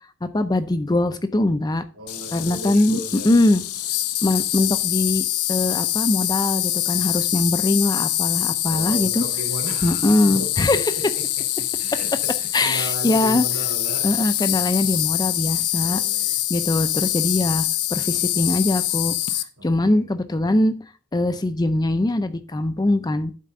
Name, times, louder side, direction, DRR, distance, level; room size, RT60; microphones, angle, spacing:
voice 1, 0.2-1.8 2.3-3.6 4.2-9.2 9.8-10.9 12.5-13.4 14.0-16.0 16.5-19.1 19.6-20.7 21.1-23.3, left 2 dB, 20° left, 0.4 m, -22 dB
voice 2, 1.9-3.3 8.7-14.1 15.5-16.3 19.6-20.0, right 1 dB, 85° right, 3.2 m, -36 dB
Insect, 2.1-19.4, left 13 dB, 85° left, 0.6 m, -25 dB
11.0 x 4.3 x 3.7 m
head